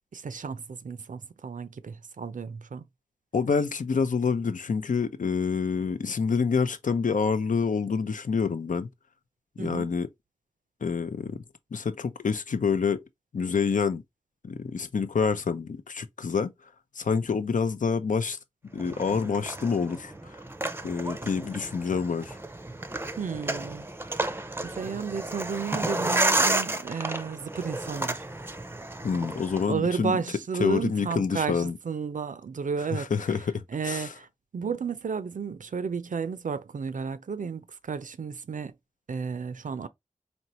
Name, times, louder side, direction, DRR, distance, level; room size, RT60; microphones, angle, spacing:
voice 1, 0.1-2.8 9.6-9.9 23.2-23.9 24.1-24.4 24.6-28.2 29.7-33.1 33.7-34.3 34.5-38.7 39.1-39.9, right 6 dB, 80° right, 0.5 m, -32 dB
voice 2, 3.3-8.9 9.6-10.1 10.8-11.4 11.7-13.0 13.3-14.0 14.4-16.5 17.0-18.4 18.7-20.1 20.8-22.4 29.0-30.2 30.6-31.7 32.9-34.1, left 5 dB, 80° left, 0.6 m, -27 dB
sound 1, 18.8-29.7, right 2 dB, 15° right, 0.5 m, -31 dB
4.4 x 2.9 x 2.9 m
wide cardioid pair, 50°, 13 cm